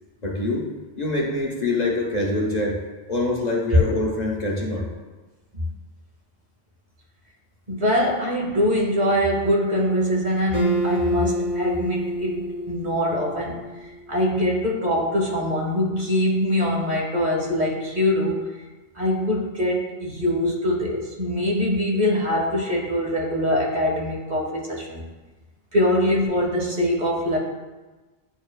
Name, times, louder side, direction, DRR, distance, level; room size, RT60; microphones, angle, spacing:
voice 1, 0.2-0.7 1.0-2.8 3.1-4.9, left 2 dB, 45° left, -2 dB, 0.9 m, -24 dB
voice 2, 7.7-18.5 18.9-25.0 25.7-27.4, equal, 45° right, -1 dB, 1.1 m, -23 dB
Acoustic guitar, 10.5-13.9, right 1 dB, 85° right, 2.0 m, -28 dB
10.0 x 4.4 x 2.3 m, 1.2 s
omnidirectional pair, 1.1 m